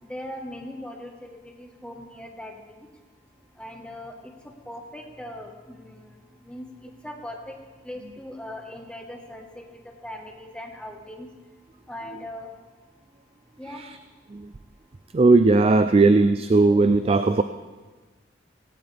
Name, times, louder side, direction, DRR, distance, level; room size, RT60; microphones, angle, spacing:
voice 1, 0.1-2.8 3.6-4.1 4.7-6.1 6.4-6.6 7.0-7.5 7.8-9.6 10.0-11.3 11.9-12.5 13.6-13.8, left 1 dB, 5° left, 2 dB, 1.4 m, -39 dB
voice 2, 15.1-17.4, right 3 dB, 30° right, 10 dB, 0.4 m, -17 dB
17.5 x 17.0 x 3.4 m, 1.3 s
head